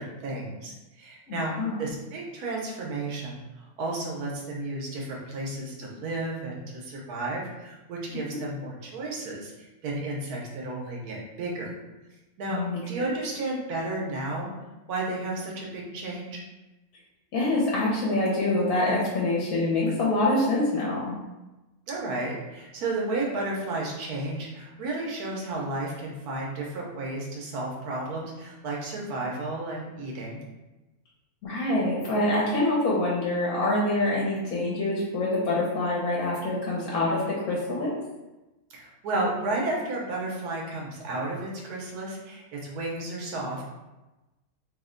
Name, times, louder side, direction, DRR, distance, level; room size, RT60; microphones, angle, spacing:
voice 1, 0.0-1.5 1.8-11.7 12.4-12.6 12.9-14.5 14.9-16.4 21.9-30.4 38.7-43.6, right 2 dB, 90° right, -2 dB, 1.3 m, -32 dB
voice 2, 1.3-1.8 12.5-12.8 17.3-21.2 31.4-37.9, left 2 dB, 75° left, -5 dB, 1.2 m, -25 dB
3.1 x 2.1 x 3.6 m, 1.1 s
omnidirectional pair, 1.6 m